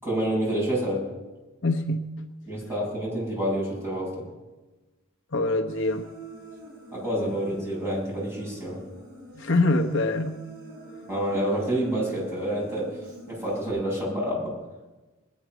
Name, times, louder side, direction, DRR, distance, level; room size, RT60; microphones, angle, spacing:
voice 1, 0.0-1.1 2.5-4.3 6.9-8.8 11.1-13.0 13.3-14.6, right 1 dB, 10° right, -4 dB, 7.1 m, -28 dB
voice 2, 1.6-2.1 5.3-6.1 9.3-10.4, left 2 dB, 60° left, 4 dB, 1.0 m, -24 dB
Human voice, 5.7-13.7, right 1 dB, 50° right, 5.7 m, -45 dB
20.5 x 10.5 x 6.2 m, 1.2 s
head